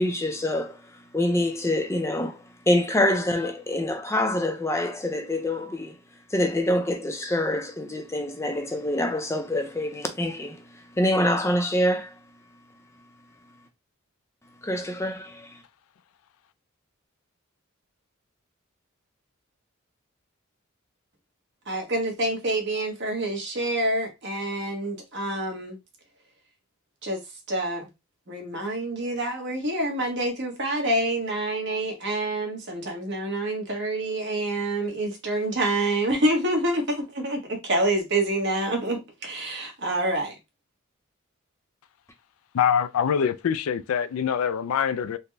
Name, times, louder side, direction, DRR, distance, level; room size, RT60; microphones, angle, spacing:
voice 1, 0.0-6.0 6.3-12.2 14.6-15.6, left 1 dB, 15° left, 0.4 m, -26 dB
voice 2, 21.7-25.8 27.0-27.2 27.5-27.9 28.3-40.3, right 1 dB, 55° right, 1.1 m, -27 dB
voice 3, 42.5-45.2, left 8 dB, 90° left, 0.3 m, -24 dB
4.0 x 2.1 x 3.3 m
head